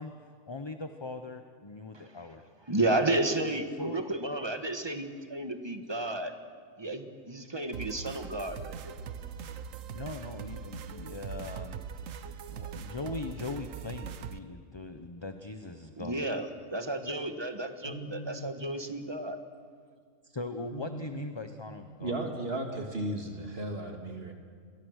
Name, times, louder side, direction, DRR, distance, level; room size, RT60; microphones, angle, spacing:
voice 1, 0.0-2.4 3.1-3.2 3.8-4.0 9.9-11.8 12.5-16.2 20.2-22.2, left 3 dB, 25° left, 7 dB, 0.9 m, -40 dB
voice 2, 2.7-6.3 6.8-9.0 16.0-19.4, right 2 dB, 20° right, 7 dB, 1.5 m, -32 dB
sound 1, 7.7-14.4, right 7 dB, 75° right, 1.3 m, -41 dB
voice 3, 17.8-18.5 20.7-21.3 22.0-24.3, right 1 dB, 50° right, 3 dB, 2.1 m, -36 dB
30.0 x 22.5 x 6.5 m, 2.1 s
omnidirectional pair, 1.4 m